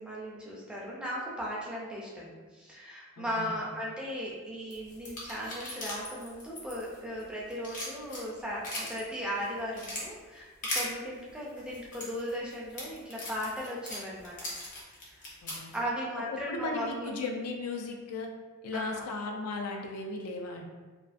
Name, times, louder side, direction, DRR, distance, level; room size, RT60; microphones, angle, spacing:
voice 1, 0.0-14.4 15.1-15.2 15.7-17.1 18.7-19.0, equal, 5° right, -6 dB, 0.3 m, -37 dB
voice 2, 3.2-3.7 15.4-15.7 16.3-18.3 18.6-20.7, left 3 dB, 85° left, 2 dB, 0.4 m, -36 dB
sound 1, 4.7-7.2 7.5-9.0 9.4-10.0 10.6-10.9 11.6-15.8, left 1 dB, 35° left, 0.6 m, -38 dB
2.4 x 2.3 x 2.4 m, 1.4 s
head